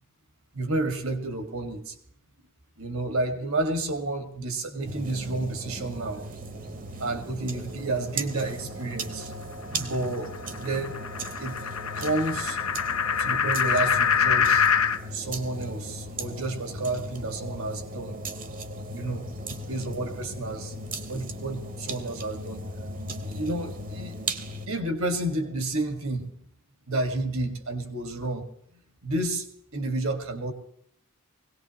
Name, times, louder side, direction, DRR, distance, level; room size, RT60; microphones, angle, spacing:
voice 1, 0.5-2.0 2.8-6.3 7.0-9.3 9.7-11.0 11.4-12.6 13.2-14.7 15.1-18.2 18.9-19.3 19.7-20.7 21.1-22.6 23.2-24.1 24.7-26.3 26.9-28.4 29.0-29.5 29.7-30.5, right 2 dB, 70° right, 6 dB, 1.9 m, -30 dB
sound 1, 4.8-24.7, right 1 dB, 40° right, 1.1 m, -37 dB
sound 2, 8.3-15.0, left 7 dB, 75° left, 0.8 m, -26 dB
21.0 x 18.0 x 3.1 m, 0.68 s
head